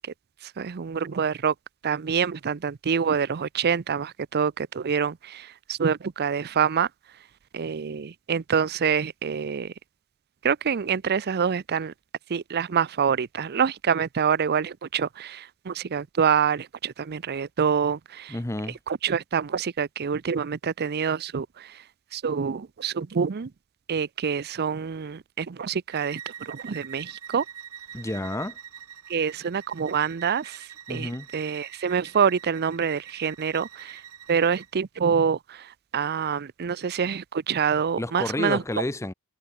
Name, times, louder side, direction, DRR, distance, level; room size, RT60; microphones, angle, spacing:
voice 1, 0.6-1.5 1.8-6.9 7.5-9.7 10.4-11.9 12.3-18.3 18.9-21.7 22.1-23.5 23.9-26.2 26.5-27.4 29.1-30.6 30.9-34.0 34.3-35.7 35.9-38.6, right 7 dB, 45° right, 0.5 m, -26 dB
voice 2, 18.3-18.8 27.9-28.6 30.9-31.3 38.0-39.1, left 1 dB, 15° left, 0.8 m, -30 dB
Bowed string instrument, 25.9-34.7, right 9 dB, 90° right, 2.1 m, -45 dB
head